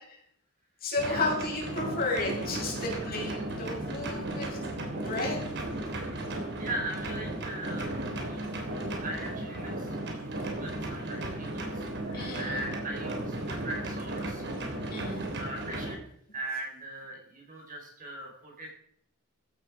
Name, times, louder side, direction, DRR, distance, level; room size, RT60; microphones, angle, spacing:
voice 1, 0.8-4.6 5.0-5.4 12.1-12.6 14.9-15.2, left 3 dB, 45° left, -1 dB, 6.2 m, -32 dB
sound 1, 1.0-16.0, right 1 dB, 55° right, 3.4 m, -35 dB
voice 2, 6.6-8.0 8.3-14.4 15.0-16.0 16.3-18.7, right 1 dB, 40° right, 0 dB, 4.7 m, -40 dB
15.5 x 12.0 x 5.0 m, 0.67 s
head